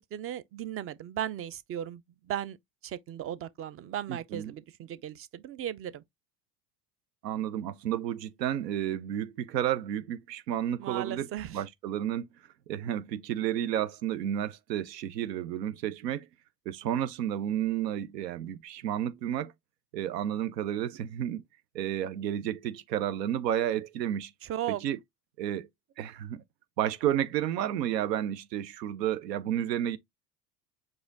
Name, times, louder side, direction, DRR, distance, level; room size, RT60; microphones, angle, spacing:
voice 1, 0.1-2.0 2.3-2.6 2.8-6.0 10.8-11.6 24.4-24.8, right 11 dB, 30° right, 0.4 m, -36 dB
voice 2, 4.1-4.5 7.2-12.3 12.7-16.3 16.7-19.5 19.9-21.4 21.7-24.3 24.8-25.0 25.4-25.7 26.0-26.4 26.8-30.0, right 11 dB, 90° right, 0.6 m, -31 dB
4.8 x 2.4 x 3.8 m
hypercardioid pair, 80°, 48 cm